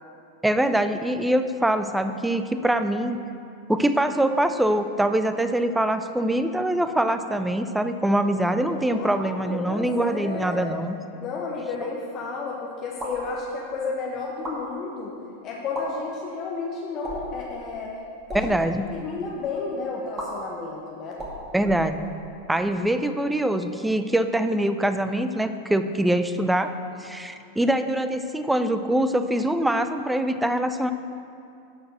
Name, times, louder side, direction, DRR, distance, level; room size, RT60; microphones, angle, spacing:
voice 1, 0.4-3.2 3.7-11.0 18.3-18.8 21.5-22.0 22.5-26.7 27.0-30.9, right 1 dB, 5° right, 9 dB, 0.5 m, -24 dB
voice 2, 8.2-10.7 11.2-15.1 15.4-18.0 18.3-18.5 18.9-21.1, left 4 dB, 35° left, -3 dB, 1.1 m, -32 dB
sound 1, 12.9-13.3 14.3-14.6 15.6-15.9 17.0-17.4 18.2-18.5 20.2-20.3 21.1-22.3, right 1 dB, 20° right, 2.3 m, -36 dB
12.5 x 4.8 x 6.3 m, 2.6 s
figure-of-eight pair, 90°, 0 cm